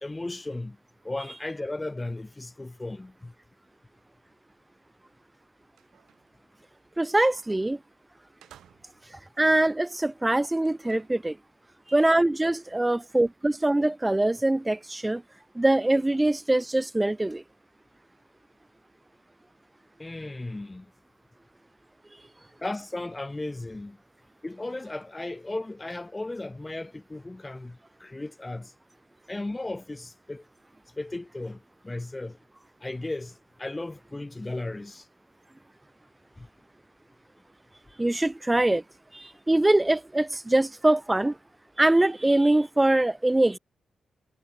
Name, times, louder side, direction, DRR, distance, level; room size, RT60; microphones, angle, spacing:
voice 1, 0.0-0.8 1.0-3.3 20.0-20.9 22.6-24.0 24.4-28.7 29.3-30.5 31.0-32.4 32.8-35.1 36.4-36.5, left 2 dB, 20° left, 0.6 m, -35 dB
sound 1, 5.2-5.3 5.6-6.4 7.7-7.8 8.4-9.2 10.5-11.2, right 11 dB, 85° right, 4.6 m, -57 dB
voice 2, 7.0-7.8 9.4-11.4 11.9-15.2 15.5-17.4 38.0-38.8 39.1-41.4 41.8-43.6, right 1 dB, 15° right, 1.1 m, -23 dB
cardioid pair, 65°, 0 cm